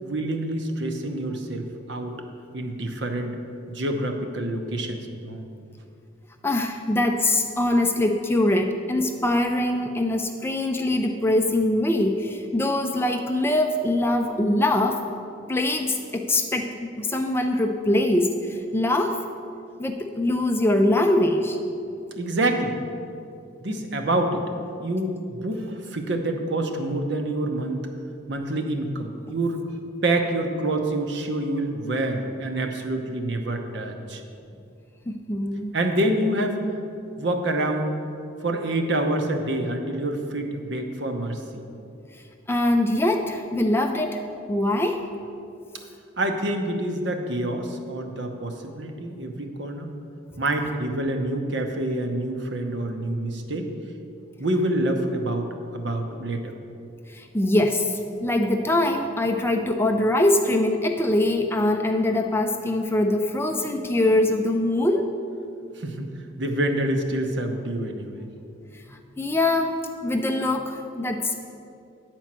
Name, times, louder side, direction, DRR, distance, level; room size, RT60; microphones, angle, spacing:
voice 1, 0.0-2.2 2.5-3.3 3.7-5.4 22.2-22.8 23.6-24.4 24.8-27.8 28.3-29.6 30.0-34.2 35.7-36.6 37.2-38.0 38.4-41.7 46.2-49.9 50.4-53.7 54.4-55.5 55.7-56.5 65.8-66.0 66.4-68.2, right 1 dB, 55° right, 4 dB, 0.9 m, -27 dB
voice 2, 6.4-15.0 15.5-16.7 17.0-19.2 19.8-21.6 35.1-35.7 42.5-45.0 57.1-65.0 69.2-69.8 70.0-71.4, left 1 dB, 10° left, 4 dB, 0.4 m, -23 dB
10.0 x 4.5 x 7.4 m, 2.6 s
head